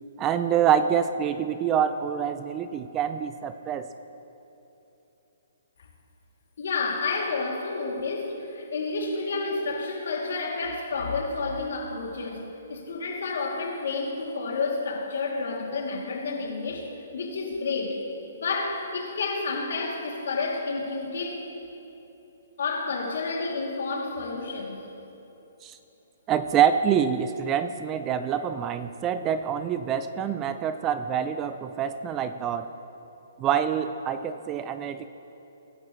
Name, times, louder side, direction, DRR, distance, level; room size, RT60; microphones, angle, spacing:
voice 1, 0.2-3.9 25.6-25.8 26.3-32.7 33.4-35.1, right 8 dB, 20° right, 11 dB, 0.4 m, -26 dB
voice 2, 6.6-16.9 17.1-18.0 18.3-21.5 22.6-24.8, left 3 dB, 70° left, -1 dB, 2.8 m, -30 dB
23.0 x 11.0 x 3.2 m, 3.0 s
hypercardioid pair, 160°, 0 cm